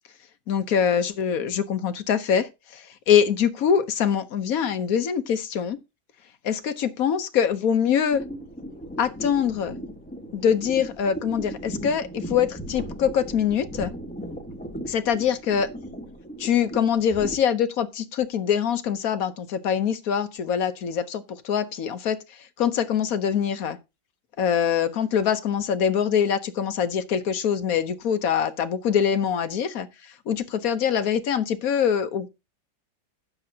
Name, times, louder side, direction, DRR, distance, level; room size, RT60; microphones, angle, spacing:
voice 1, 0.5-5.8 6.4-8.2 9.0-9.8 10.3-13.9 14.9-15.7 16.4-23.8 24.4-32.3, left 8 dB, 60° left, 1.3 m, -24 dB
sound 1, 8.1-17.4, equal, 5° left, 1.3 m, -37 dB
15.0 x 7.1 x 2.8 m
omnidirectional pair, 1.8 m